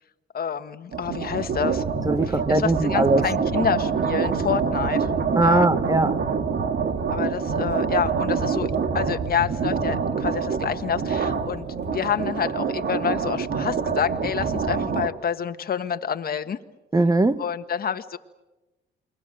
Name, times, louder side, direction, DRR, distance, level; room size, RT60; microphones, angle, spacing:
voice 1, 0.3-1.8 2.3-5.1 5.4-5.7 7.1-16.6 17.4-18.2, left 8 dB, 50° left, 1.6 m, -28 dB
sound 1, 0.9-15.1, right 6 dB, 55° right, 2.3 m, -26 dB
voice 2, 2.1-3.2 5.4-6.2 16.9-17.4, right 2 dB, 20° right, 1.1 m, -20 dB
28.5 x 22.5 x 7.8 m
cardioid pair, 90°, 20 cm